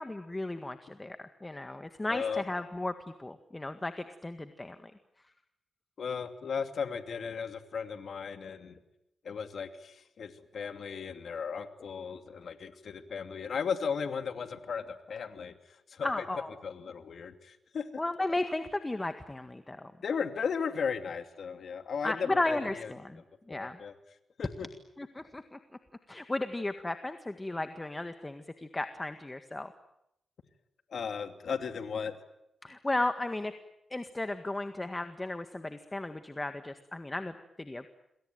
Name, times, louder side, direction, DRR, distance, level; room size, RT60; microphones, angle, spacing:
voice 1, 0.0-4.9 16.0-16.5 18.0-19.9 22.0-23.2 23.5-23.8 25.0-25.6 26.1-29.7 32.6-33.5 33.9-37.9, left 2 dB, 20° left, 9 dB, 1.8 m, -35 dB
voice 2, 2.1-2.4 6.0-8.8 9.2-16.2 16.6-17.9 20.0-22.9 23.5-23.9 24.4-24.7 30.9-32.2, left 6 dB, 70° left, 9 dB, 2.7 m, -36 dB
28.0 x 22.5 x 9.2 m, 0.82 s
cardioid pair, 80°, 0 cm